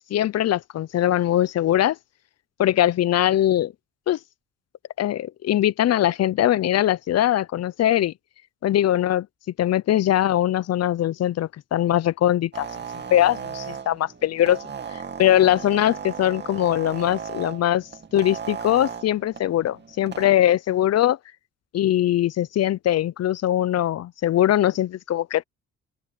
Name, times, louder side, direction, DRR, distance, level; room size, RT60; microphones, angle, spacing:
voice 1, 0.1-2.0 2.6-3.7 4.1-4.2 5.0-8.1 8.6-9.3 9.6-12.7 13.1-14.6 15.2-17.8 18.1-21.2 21.7-25.4, left 12 dB, 55° left, 0.7 m, -21 dB
sound 1, 12.5-20.3, right 6 dB, 35° right, 2.6 m, -36 dB
open air
cardioid pair, 90°, 30 cm